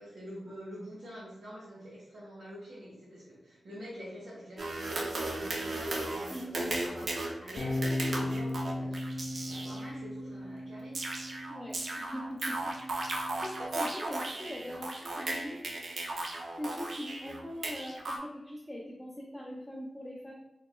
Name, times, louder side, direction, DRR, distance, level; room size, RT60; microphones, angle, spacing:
voice 1, 0.0-7.9 8.1-11.3, equal, 80° right, -9 dB, 1.3 m, -47 dB
sound 1, 4.6-9.9 10.9-18.2, right 2 dB, 65° right, 0.5 m, -36 dB
voice 2, 6.3-6.7 11.5-15.7 16.6-20.3, equal, 5° left, -4 dB, 0.6 m, -42 dB
sound 2, 7.6-13.8, left 1 dB, 60° left, 0.5 m, -37 dB
4.1 x 2.9 x 2.3 m, 0.95 s
wide cardioid pair, 100°, 0 cm